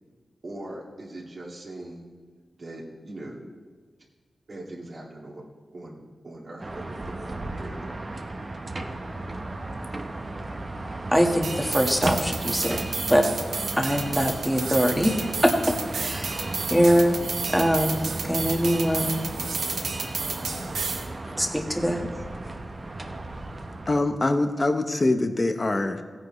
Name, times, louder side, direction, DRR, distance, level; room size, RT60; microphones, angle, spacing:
voice 1, 0.4-2.1 2.6-3.5 4.5-5.4 5.7-8.1, right 1 dB, 60° right, -4 dB, 2.1 m, -41 dB
sound 1, 6.6-24.0, right 2 dB, 40° right, 1.1 m, -35 dB
voice 2, 11.1-12.8 13.1-13.3 13.8-15.2 15.4-16.4 16.7-19.3 21.4-22.1, equal, ahead, 2 dB, 1.7 m, -23 dB
sound 2, 11.4-21.1, right 4 dB, 85° right, 1.1 m, -32 dB
voice 3, 23.9-26.0, left 2 dB, 40° left, 7 dB, 1.0 m, -24 dB
15.5 x 9.7 x 3.2 m, 1.5 s
cardioid pair, 50°, 0 cm